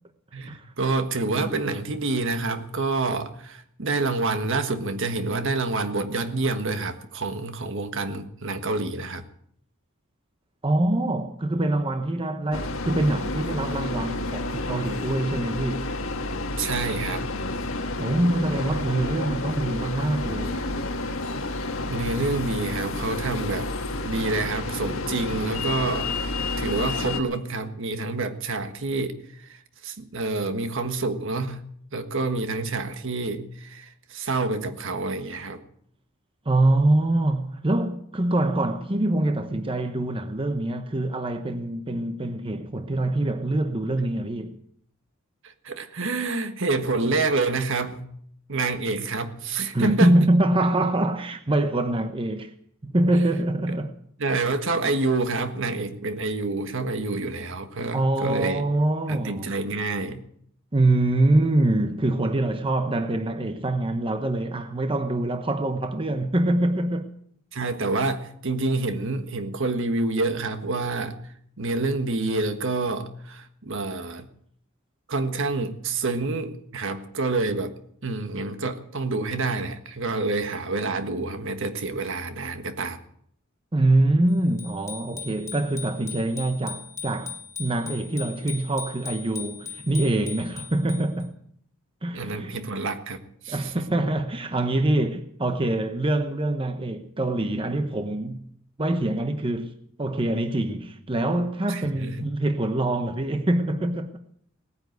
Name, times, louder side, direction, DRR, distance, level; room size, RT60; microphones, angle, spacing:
voice 1, 0.3-9.2 16.6-17.2 21.8-23.7 24.0-31.6 31.9-35.6 45.4-48.0 48.5-50.1 54.2-58.6 59.1-60.2 67.5-71.2 71.6-74.3 75.1-77.7 78.0-83.0 92.1-93.9 101.7-102.2, right 3 dB, 65° right, 1.5 m, -28 dB
voice 2, 10.6-15.9 18.0-20.7 36.4-44.6 49.7-52.5 52.8-53.9 57.9-59.6 60.7-67.1 83.7-91.3 92.0-92.6 93.5-98.5 98.8-99.7 100.0-104.1, right 1 dB, 25° right, 0.9 m, -24 dB
sound 1, 12.5-27.2, left 2 dB, 70° left, 1.6 m, -30 dB
Bicycle bell, 84.6-91.2, left 6 dB, 15° left, 2.6 m, -39 dB
18.5 x 9.7 x 8.0 m
head